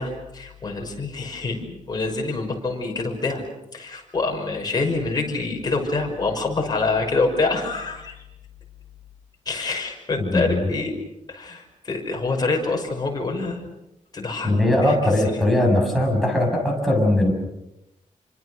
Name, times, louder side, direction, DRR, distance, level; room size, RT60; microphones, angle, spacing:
voice 1, 0.0-3.4 3.7-8.2 9.5-10.9 11.3-13.6 14.1-15.5, left 3 dB, 30° left, 1 dB, 5.9 m, -26 dB
voice 2, 10.3-10.7 14.4-17.3, left 1 dB, ahead, -1 dB, 7.2 m, -20 dB
28.5 x 25.5 x 6.5 m, 0.88 s
wide cardioid pair, 155°, 13 cm